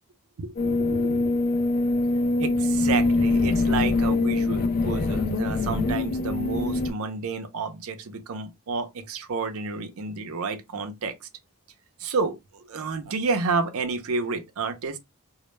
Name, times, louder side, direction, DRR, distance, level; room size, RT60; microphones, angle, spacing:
voice 1, 0.4-1.6 2.4-11.1 12.0-12.4 12.7-15.0, right 4 dB, 70° right, 0.5 m, -30 dB
sound 1, 0.6-6.9, left 3 dB, 40° left, 0.3 m, -24 dB
2.1 x 2.1 x 3.1 m
head